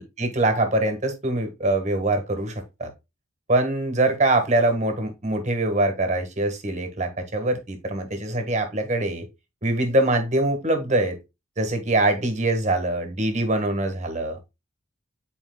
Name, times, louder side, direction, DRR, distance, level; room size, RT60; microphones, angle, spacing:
voice 1, 0.2-2.9 3.5-9.2 9.6-11.2 11.6-14.4, right 2 dB, 35° right, 1.4 m, -23 dB
10.0 x 4.4 x 2.2 m
head